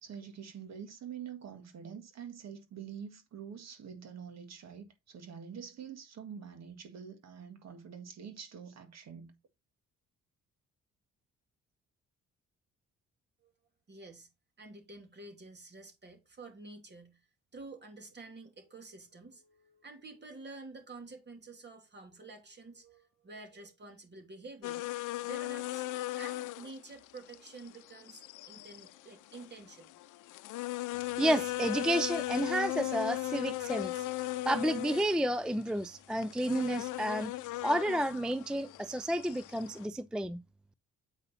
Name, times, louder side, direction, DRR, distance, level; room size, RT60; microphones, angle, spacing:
voice 1, 0.0-9.3, right 7 dB, 60° right, 1.7 m, -46 dB
voice 2, 13.9-14.3 14.6-17.2 17.5-25.8 26.1-30.0, right 3 dB, 35° right, 3.1 m, -50 dB
sound 1, 24.6-39.9, left 17 dB, 80° left, 0.6 m, -38 dB
voice 3, 31.2-37.3 37.6-40.4, right 1 dB, 5° right, 0.4 m, -31 dB
8.2 x 5.4 x 4.1 m
cardioid pair, 90°, 30 cm